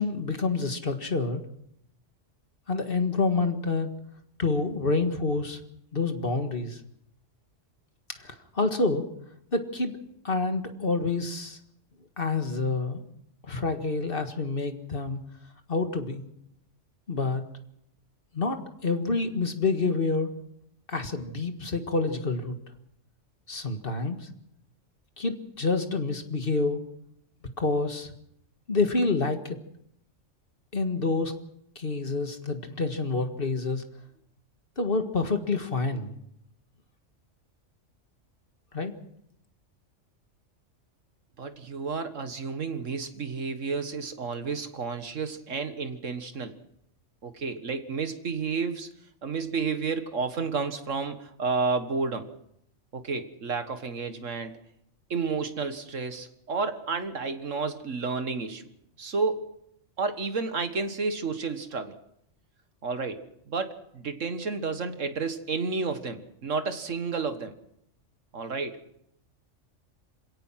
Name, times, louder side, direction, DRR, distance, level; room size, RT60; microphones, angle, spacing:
voice 1, 0.0-1.4 2.7-3.9 4.4-5.6 5.9-6.8 8.2-9.0 9.5-10.0 10.2-11.6 12.2-13.0 13.4-15.2 15.7-16.2 17.1-17.4 18.3-20.3 20.9-22.6 23.5-24.3 25.2-26.8 27.6-28.1 28.7-29.6 30.7-31.3 31.8-33.8 34.8-36.1 38.7-38.9, left 3 dB, 45° left, 7 dB, 2.0 m, -28 dB
voice 2, 41.4-46.5 47.2-48.9 49.2-52.3 52.9-54.5 55.1-58.7 59.0-59.5 60.0-62.0 62.8-67.5 68.3-68.8, right 4 dB, 80° right, 9 dB, 2.0 m, -31 dB
27.5 x 17.0 x 5.9 m, 0.74 s
omnidirectional pair, 1.3 m